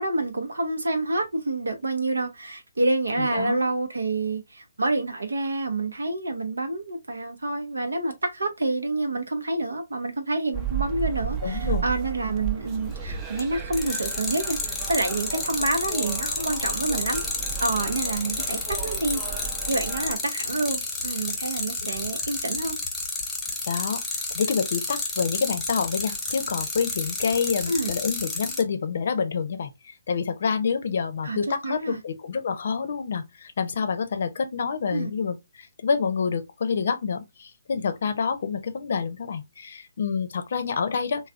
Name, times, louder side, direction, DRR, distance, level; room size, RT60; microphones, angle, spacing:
voice 1, 0.0-14.6 14.9-17.2 17.6-22.8 27.7-27.9 31.2-31.4 31.6-32.0 34.9-35.1, right 2 dB, 85° right, 0.7 m, -28 dB
voice 2, 3.2-3.7 11.4-11.9 23.7-24.0 24.3-41.3, left 5 dB, 60° left, 0.6 m, -27 dB
sound 1, 10.5-20.2, right 9 dB, 25° right, 0.6 m, -34 dB
sound 2, 13.0-13.4 13.7-28.6, left 3 dB, 10° left, 1.0 m, -30 dB
3.3 x 2.2 x 2.4 m
hypercardioid pair, 145°, 0 cm